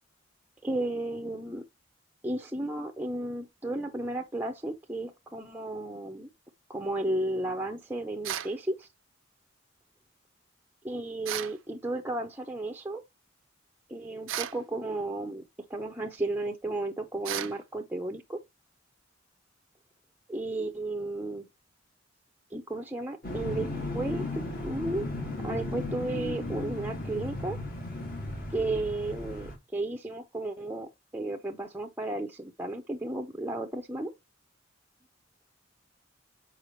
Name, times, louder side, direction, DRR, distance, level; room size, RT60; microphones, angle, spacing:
voice 1, 0.6-1.6 2.2-6.3 6.7-8.9 10.8-13.0 13.9-15.4 15.7-18.4 20.3-21.5 22.5-23.7 23.9-25.1 25.4-27.6 28.5-34.1, right 2 dB, 10° right, 0.6 m, -33 dB
sound 1, 8.2-8.6 11.2-11.6 14.3-14.6 17.2-17.6, right 11 dB, 80° right, 0.6 m, -34 dB
sound 2, 23.2-29.6, left 2 dB, 50° left, 1.8 m, -35 dB
6.5 x 4.9 x 3.0 m
head